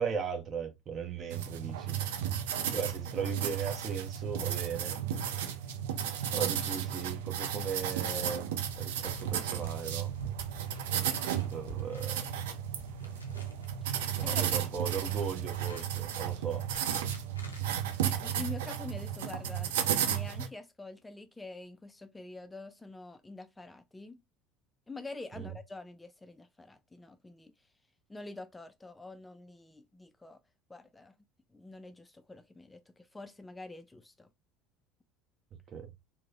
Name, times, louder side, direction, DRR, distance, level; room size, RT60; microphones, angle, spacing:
voice 1, 0.0-2.0 2.7-5.0 6.3-8.5 8.7-10.1 11.3-12.2 14.2-16.7 25.4-25.5 35.7-35.9, right 6 dB, 40° right, 0.7 m, -37 dB
sound 1, 1.3-20.5, right 9 dB, 70° right, 0.3 m, -34 dB
sound 2, 8.6-18.7, left 1 dB, 90° left, 0.5 m, -53 dB
voice 2, 13.8-14.4 18.2-24.2 24.9-27.7 28.1-30.4 30.7-31.2 31.5-34.3, left 2 dB, 15° left, 0.3 m, -46 dB
3.0 x 2.0 x 2.3 m
figure-of-eight pair, 65°, 0 cm